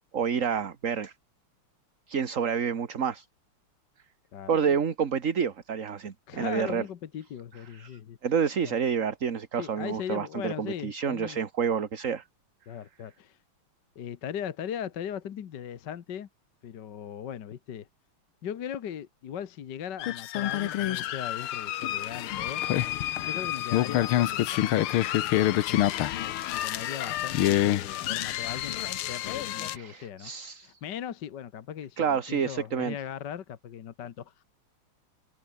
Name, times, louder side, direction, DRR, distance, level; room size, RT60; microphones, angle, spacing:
voice 1, 0.1-1.1 2.1-3.3 4.5-6.8 7.7-12.2 29.7-30.8 32.0-32.9, right 7 dB, 40° right, 1.7 m, -29 dB
voice 2, 4.3-4.8 6.3-8.2 8.6-9.1 9.6-11.4 12.7-13.4 13.9-16.3 16.6-17.9 18.4-22.6 23.2-25.0 25.5-26.0 26.5-30.3 30.6-34.4, left 9 dB, 55° left, 1.7 m, -39 dB
sound 1, 20.0-29.8, left 13 dB, 80° left, 1.8 m, -27 dB
omnidirectional pair, 2.4 m